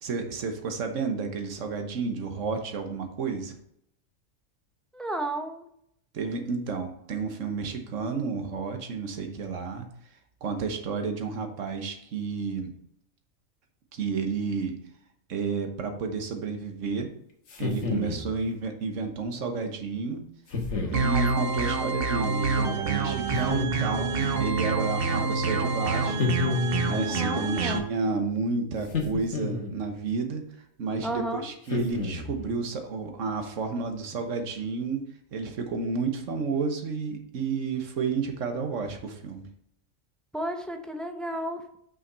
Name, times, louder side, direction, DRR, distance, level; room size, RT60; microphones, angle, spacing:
voice 1, 0.0-3.5 6.1-9.9 10.4-12.8 13.9-14.8 15.3-17.1 17.6-20.3 20.9-26.3 26.9-39.5, right 4 dB, 70° right, 5 dB, 1.4 m, -31 dB
voice 2, 4.9-5.7 20.7-21.0 27.1-27.9 31.0-31.5 40.3-41.6, right 1 dB, ahead, 4 dB, 0.4 m, -33 dB
sound 1, 17.5-18.3 20.5-21.1 23.3-24.1 26.2-27.1 28.9-29.9 31.7-32.5, left 3 dB, 60° left, 1.5 m, -30 dB
sound 2, 20.9-27.8, right 4 dB, 50° right, 0.9 m, -27 dB
6.0 x 5.6 x 4.0 m, 0.71 s
omnidirectional pair, 1.4 m